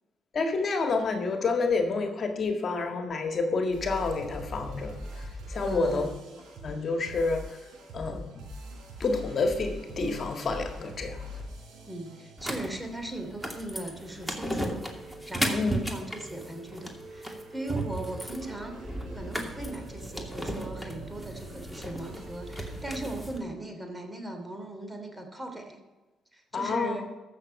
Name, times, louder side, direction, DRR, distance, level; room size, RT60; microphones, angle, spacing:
voice 1, 0.3-6.1 6.6-7.6 7.9-8.4 9.0-11.3 15.5-15.7 26.5-27.0, left 3 dB, 50° left, 5 dB, 1.8 m, -29 dB
sound 1, 3.7-23.0, equal, 80° right, 4.3 m, -44 dB
voice 2, 5.6-6.2 11.9-18.8 19.1-25.8 26.3-27.1, right 1 dB, 15° right, 5 dB, 2.8 m, -39 dB
sound 2, 12.4-23.4, right 1 dB, ahead, 2.5 m, -35 dB
14.0 x 6.8 x 5.4 m, 1.2 s
hypercardioid pair, 50°, 0 cm